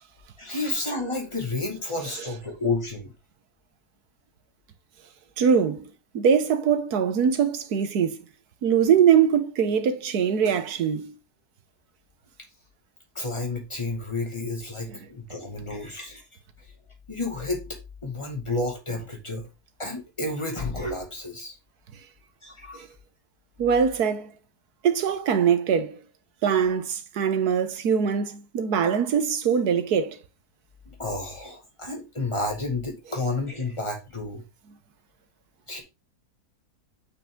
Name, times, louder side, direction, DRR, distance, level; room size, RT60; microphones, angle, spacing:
voice 1, 0.4-3.1 13.2-16.2 17.1-17.8 18.0-19.5 19.8-21.5 22.4-22.8 31.0-34.4 35.7-35.8, left 2 dB, 20° left, 2.1 m, -31 dB
voice 2, 5.4-5.9 6.1-8.2 8.6-11.1 14.9-15.0 22.7-22.9 23.6-24.3 24.8-26.0 26.4-30.2, right 7 dB, 80° right, 1.5 m, -22 dB
7.1 x 5.9 x 3.7 m
omnidirectional pair, 1.6 m